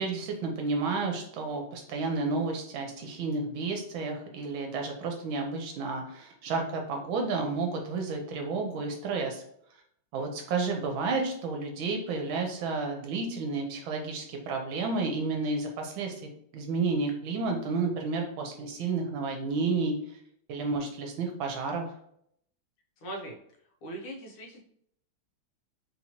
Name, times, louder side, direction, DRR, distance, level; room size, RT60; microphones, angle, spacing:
voice 1, 0.0-9.4 10.1-16.1 16.5-19.9 20.5-21.9, right 4 dB, 75° right, 2 dB, 1.4 m, -31 dB
voice 2, 23.0-23.4 23.8-24.6, right 1 dB, 85° left, 0 dB, 1.9 m, -40 dB
4.0 x 2.9 x 2.8 m, 0.69 s
omnidirectional pair, 2.3 m